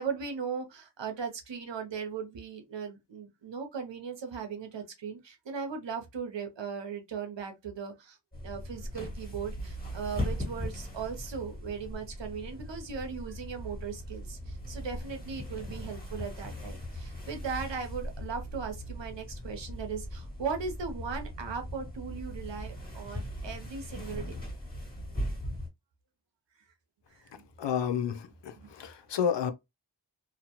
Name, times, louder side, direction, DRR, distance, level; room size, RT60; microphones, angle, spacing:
voice 1, 0.0-8.2 8.4-24.4 27.1-27.2 27.7-27.8 28.6-28.7, right 6 dB, 85° right, 0.8 m, -38 dB
sound 1, 8.3-25.7, equal, 20° left, 1.6 m, -39 dB
voice 2, 27.6-28.2 28.8-29.5, left 8 dB, 80° left, 0.6 m, -29 dB
2.6 x 2.1 x 2.8 m
cardioid pair, 40°, 43 cm